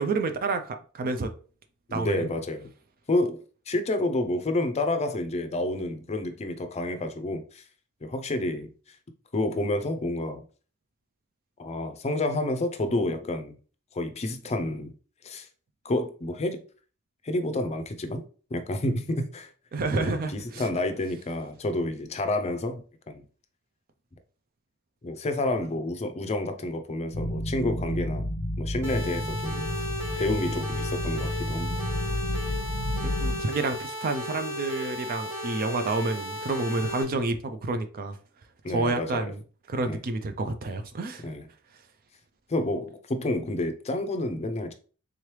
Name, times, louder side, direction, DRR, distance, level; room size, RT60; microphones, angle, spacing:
voice 1, 0.0-1.3 1.9-2.3 19.7-20.6 33.0-38.2 38.7-39.4 39.7-41.3, right 3 dB, 40° right, 0.4 m, -29 dB
voice 2, 1.9-2.7 3.1-7.6 8.0-8.7 9.3-10.4 11.6-13.6 13.9-14.9 15.2-15.5 15.8-16.6 17.2-18.2 18.5-19.5 19.9-23.2 25.0-28.3 28.6-29.7 30.2-31.7 38.6-39.3 39.8-40.0 41.2-41.5 42.5-44.7, left 2 dB, 30° left, 0.5 m, -29 dB
sound 1, 27.1-33.4, left 1 dB, 80° left, 0.6 m, -31 dB
sound 2, 28.8-37.0, left 1 dB, 15° right, 1.3 m, -35 dB
3.7 x 3.1 x 3.1 m
head